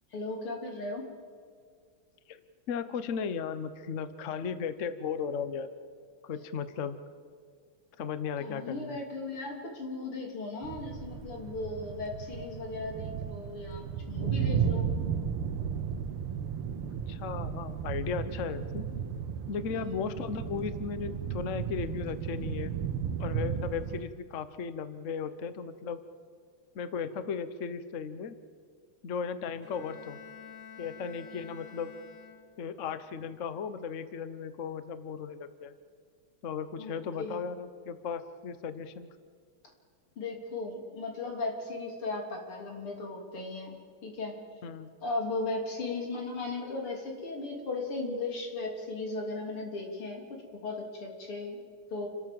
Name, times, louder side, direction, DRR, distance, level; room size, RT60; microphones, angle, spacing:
voice 1, 0.1-1.1 8.4-14.9 19.7-20.0 36.8-37.4 40.2-44.4 45.0-51.6 51.9-52.1, left 3 dB, 90° left, 1 dB, 4.2 m, -37 dB
voice 2, 2.3-5.7 6.2-7.0 8.0-9.0 17.1-18.9 19.5-22.7 23.2-26.0 26.7-28.4 29.0-30.2 30.8-31.9 32.6-35.7 36.4-39.1 44.6-44.9, left 6 dB, 45° left, 12 dB, 1.1 m, -36 dB
sound 1, 10.6-24.0, right 7 dB, 85° right, 1.8 m, -34 dB
Bowed string instrument, 29.6-32.8, left 7 dB, 65° left, 2.6 m, -49 dB
28.5 x 13.5 x 7.7 m, 2.1 s
omnidirectional pair, 2.3 m